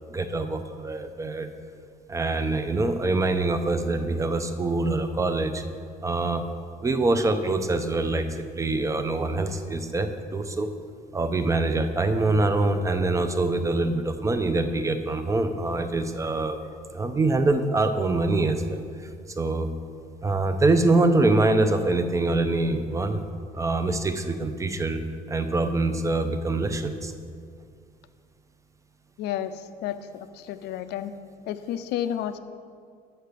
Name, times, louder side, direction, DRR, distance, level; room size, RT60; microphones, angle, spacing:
voice 1, 0.0-1.5 2.1-5.6 6.0-6.4 6.8-10.7 11.1-16.6 16.9-18.8 19.3-19.7 20.2-23.2 23.5-25.0 25.3-27.1, right 2 dB, 20° right, 9 dB, 0.6 m, -24 dB
voice 2, 29.2-31.1 31.5-32.4, left 10 dB, 80° left, 11 dB, 0.5 m, -31 dB
6.5 x 5.8 x 6.7 m, 2.2 s
cardioid pair, 110°, 17 cm